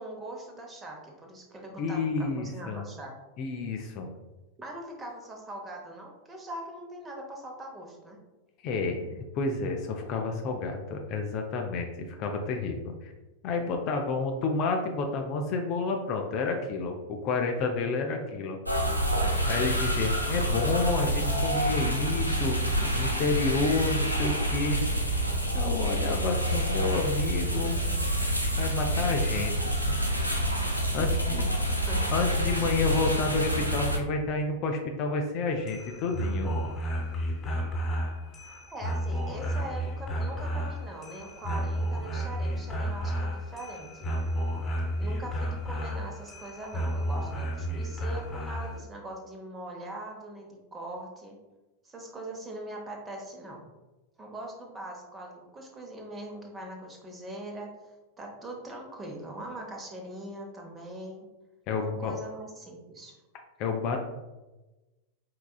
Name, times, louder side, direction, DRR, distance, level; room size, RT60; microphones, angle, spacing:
voice 1, 0.0-3.1 4.6-8.2 25.9-26.0 31.0-31.4 31.9-32.0 38.7-44.1 45.0-51.4 51.8-53.6 54.2-57.7 58.2-61.3 61.8-63.1, right 1 dB, 20° right, 1 dB, 0.9 m, -41 dB
voice 2, 1.8-2.8 3.4-4.1 8.6-13.1 13.4-18.6 19.5-22.6 23.0-24.8 25.5-27.8 28.6-29.9 30.9-31.5 32.1-36.5 61.7-62.2 63.6-64.0, left 3 dB, 40° left, 3 dB, 0.5 m, -30 dB
bangalore wassersprenger, 18.7-34.0, right 1 dB, 90° left, 0.6 m, -27 dB
sound 1, 35.5-48.8, equal, 20° left, 1.5 m, -32 dB
4.6 x 3.8 x 2.3 m, 1.1 s
figure-of-eight pair, 90°, 0 cm